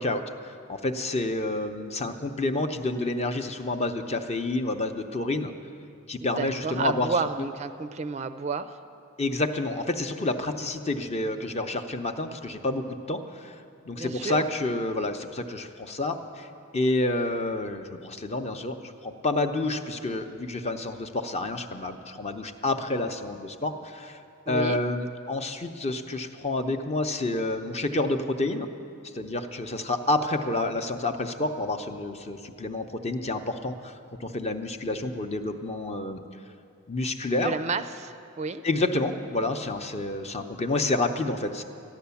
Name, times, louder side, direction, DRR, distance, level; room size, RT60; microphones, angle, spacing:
voice 1, 0.0-5.5 6.1-7.1 7.4-7.5 9.2-13.6 13.8-16.5 16.7-24.2 24.5-28.7 29.0-33.9 34.2-36.2 36.9-37.6 38.6-41.6, left 2 dB, 30° left, 7 dB, 0.7 m, -29 dB
voice 2, 6.2-8.8 14.0-14.5 24.5-24.8 37.4-38.6, right 4 dB, 35° right, 10 dB, 0.4 m, -31 dB
14.0 x 10.5 x 7.0 m, 2.5 s
head